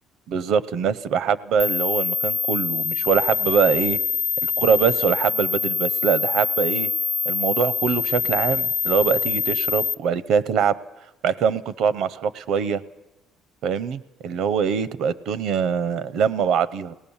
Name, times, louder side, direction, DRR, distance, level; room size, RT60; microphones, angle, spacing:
voice 1, 0.3-4.0 4.6-6.9 7.3-10.8 11.2-12.8 13.6-16.9, right 7 dB, 65° right, 18 dB, 0.7 m, -23 dB
sound 1, 1.6-9.9, left 5 dB, 35° left, 0.6 m, -24 dB
22.5 x 18.0 x 7.1 m, 1.0 s
cardioid pair, 135°, 0 cm